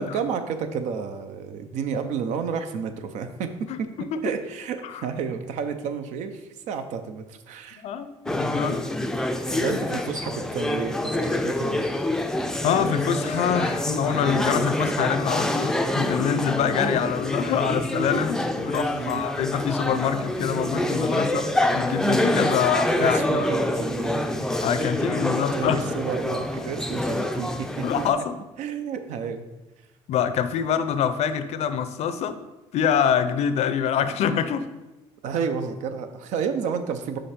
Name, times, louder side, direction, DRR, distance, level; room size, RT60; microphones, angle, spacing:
voice 1, 0.0-3.5 3.8-3.9 4.2-7.8 9.6-11.9 18.9-19.2 23.0-24.5 25.3-27.7 28.6-29.5 35.2-37.2, right 6 dB, 75° right, 8 dB, 0.7 m, -31 dB
voice 2, 7.7-8.8 9.5-9.7 12.6-23.5 24.6-25.9 27.8-28.3 30.1-32.4 32.7-34.7, left 8 dB, 60° left, 11 dB, 0.5 m, -25 dB
sound 1, 8.3-28.1, left 1 dB, 5° left, 0.4 m, -26 dB
5.2 x 4.9 x 4.3 m, 1.0 s
cardioid pair, 110°, 13 cm